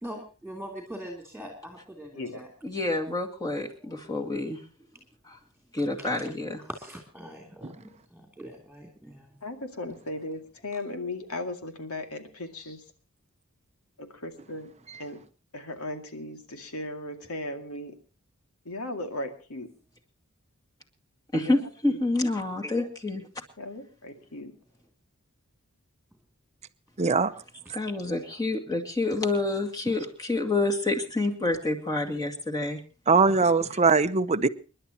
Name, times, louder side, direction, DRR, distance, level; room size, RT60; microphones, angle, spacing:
voice 1, 0.0-2.5 3.8-3.9 5.8-6.3 6.6-9.3 33.6-33.7, equal, ahead, 3.1 m, -42 dB
voice 2, 2.6-4.6 5.3-5.4 5.7-6.6 21.3-23.2 27.7-32.8, left 2 dB, 15° left, 2.2 m, -28 dB
voice 3, 9.4-12.8 14.0-14.7 15.0-15.2 15.5-17.9 18.6-19.7 21.3-22.0 23.6-24.5, left 1 dB, 75° left, 2.3 m, -37 dB
voice 4, 27.0-27.3 33.1-34.5, right 4 dB, 30° right, 0.7 m, -21 dB
29.0 x 11.0 x 2.9 m
head